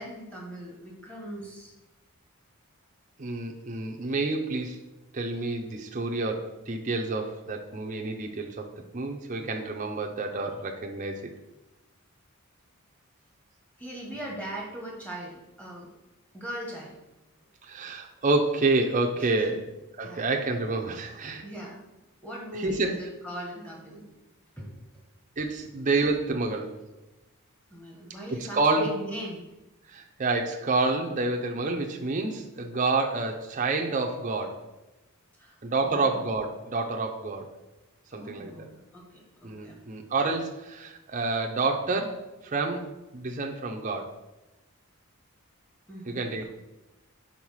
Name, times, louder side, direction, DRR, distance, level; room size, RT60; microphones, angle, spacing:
voice 1, 0.0-1.7 13.8-15.9 16.3-17.0 19.2-19.5 20.0-20.2 21.4-21.8 22.2-24.0 24.6-24.8 27.7-29.5 35.4-35.6 35.8-36.2 38.1-39.8 45.9-46.4, right 1 dB, 5° left, -2 dB, 1.2 m, -39 dB
voice 2, 3.2-4.8 5.1-11.3 17.6-19.6 20.0-21.4 22.5-22.9 25.4-26.8 28.3-28.9 29.9-34.6 35.6-37.5 38.1-38.7 39.4-44.1 46.1-46.4, right 3 dB, 35° right, 2 dB, 0.6 m, -28 dB
4.7 x 4.3 x 5.6 m, 1.0 s
head